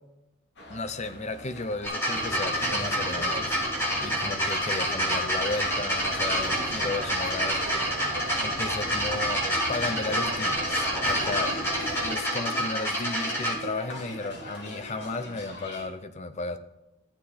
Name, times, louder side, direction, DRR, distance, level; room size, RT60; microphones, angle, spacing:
sound 1, 0.6-15.9, left 1 dB, 55° left, 2.5 m, -43 dB
voice 1, 0.7-3.6 4.0-7.6 8.4-11.6 12.0-16.6, left 3 dB, 30° left, 9 dB, 0.6 m, -34 dB
sound 2, 1.8-13.5 14.5-14.6, equal, 10° left, 4.2 m, -28 dB
sound 3, 2.1-12.2, right 2 dB, 40° right, 1.0 m, -38 dB
15.5 x 7.7 x 4.2 m, 0.95 s
head